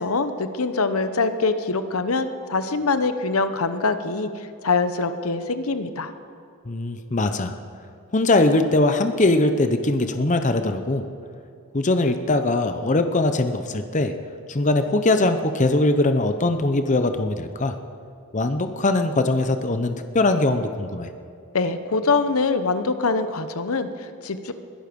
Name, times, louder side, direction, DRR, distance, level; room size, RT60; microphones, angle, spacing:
voice 1, 0.0-4.3 4.6-6.1 21.5-24.5, left 4 dB, 75° left, 10 dB, 0.9 m, -24 dB
voice 2, 6.7-7.5 8.1-11.1 11.7-14.1 14.5-17.8 18.3-21.1, left 2 dB, 35° left, 8 dB, 0.7 m, -21 dB
21.5 x 12.0 x 5.3 m, 2.5 s
head